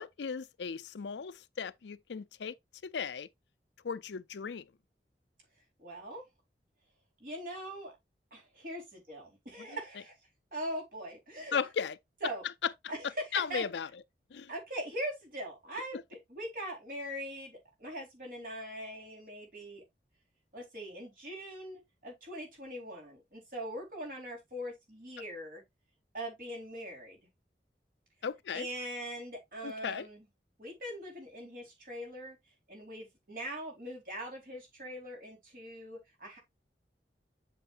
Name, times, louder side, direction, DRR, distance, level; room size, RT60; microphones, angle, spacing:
voice 1, 0.0-2.6 2.8-3.3 3.8-4.7 9.6-9.8 11.5-12.0 12.6-12.7 13.0-13.9 14.3-14.5 15.8-16.0 28.2-28.7 29.6-30.1, left 6 dB, 85° left, 0.5 m, -36 dB
voice 2, 5.8-6.2 7.2-7.9 8.3-10.1 10.5-11.6 12.2-12.4 12.9-13.7 14.5-16.0 16.3-19.8 20.5-25.6 26.1-27.2 28.5-30.2 30.6-32.4 32.7-36.4, equal, 50° right, 4.0 m, -41 dB
7.7 x 6.7 x 2.5 m
head